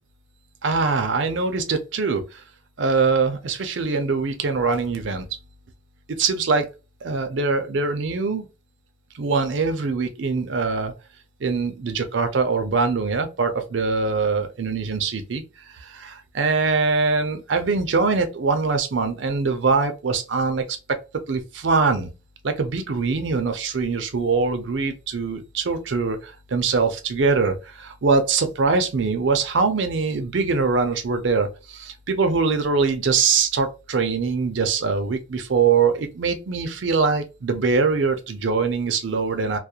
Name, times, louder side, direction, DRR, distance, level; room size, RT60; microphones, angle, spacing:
voice 1, 0.6-2.4 2.8-5.3 6.2-6.7 7.0-8.5 9.1-10.9 11.4-15.4 15.8-21.0 21.3-22.1 22.4-39.6, right 4 dB, 70° right, 0.5 m, -23 dB
2.4 x 2.0 x 2.7 m
head